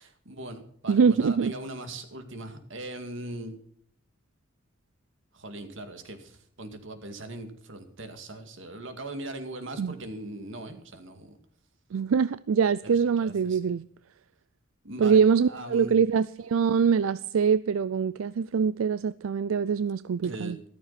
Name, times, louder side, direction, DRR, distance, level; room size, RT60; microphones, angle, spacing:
voice 1, 0.0-3.5 5.3-11.4 12.8-13.7 14.8-15.2 15.5-16.0 20.2-20.6, right 1 dB, 65° right, 2.3 m, -40 dB
voice 2, 0.9-1.5 9.8-9.9 11.9-13.8 15.0-20.6, right 6 dB, 90° right, 0.4 m, -24 dB
14.0 x 13.5 x 4.2 m
head